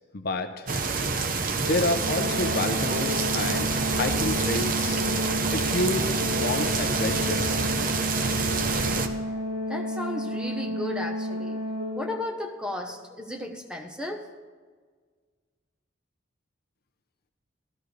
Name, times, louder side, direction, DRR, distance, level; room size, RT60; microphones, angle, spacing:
voice 1, 0.1-0.7 1.6-5.0 5.5-7.4, left 2 dB, 50° left, 7 dB, 0.6 m, -29 dB
sound 1, 0.7-9.1, right 4 dB, 40° right, 0.7 m, -27 dB
Organ, 1.7-12.5, equal, 80° right, 1.5 m, -32 dB
voice 2, 9.7-11.6 12.0-14.3, left 1 dB, 5° right, 2 dB, 0.9 m, -34 dB
13.5 x 13.0 x 3.3 m, 1.6 s
head